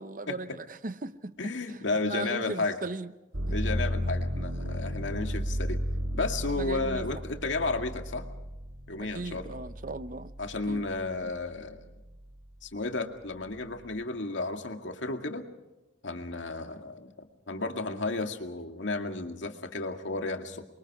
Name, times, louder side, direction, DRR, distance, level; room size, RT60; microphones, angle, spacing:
voice 1, 0.0-1.3 1.7-3.1 6.5-7.2 9.0-10.3 10.7-10.8, right 3 dB, 45° right, 0.8 m, -38 dB
voice 2, 1.4-2.8 3.5-5.8 6.1-8.3 8.9-9.6 10.4-11.9 12.6-15.5 16.0-17.1 17.5-20.7, left 3 dB, 85° left, 2.2 m, -33 dB
sound 1, 3.3-11.2 11.6-12.4, equal, 85° right, 1.7 m, -34 dB
28.5 x 23.5 x 4.9 m
head